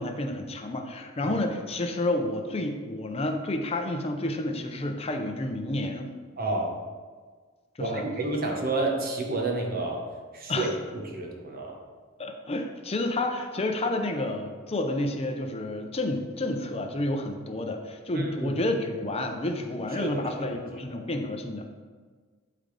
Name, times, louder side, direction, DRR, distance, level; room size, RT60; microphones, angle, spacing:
voice 1, 0.0-6.1 7.8-8.0 10.5-10.8 12.2-21.7, left 1 dB, 30° left, 4 dB, 0.7 m, -30 dB
voice 2, 6.4-6.8 7.8-10.0 10.3-11.8 18.1-18.6 20.0-21.0, right 2 dB, 45° right, 0 dB, 1.2 m, -30 dB
11.5 x 3.9 x 3.3 m, 1.5 s
head